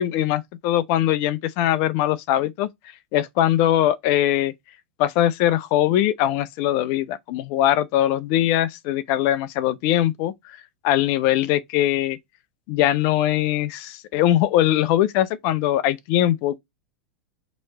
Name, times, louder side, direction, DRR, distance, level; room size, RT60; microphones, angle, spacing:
voice 1, 0.0-2.7 3.1-4.5 5.0-10.3 10.8-12.2 12.7-16.6, left 12 dB, 50° left, 0.5 m, -21 dB
3.1 x 3.0 x 4.2 m
hypercardioid pair, 95°, 6 cm